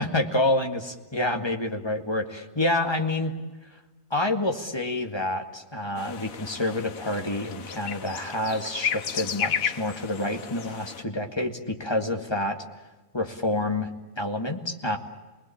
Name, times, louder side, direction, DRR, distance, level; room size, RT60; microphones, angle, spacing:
voice 1, 0.0-3.3 4.1-12.6 13.1-13.9 14.2-15.0, left 1 dB, 20° left, 4 dB, 2.0 m, -28 dB
sound 1, 6.0-11.0, left 8 dB, 75° left, 1.5 m, -33 dB
29.0 x 20.5 x 8.7 m, 1.2 s
omnidirectional pair, 1.5 m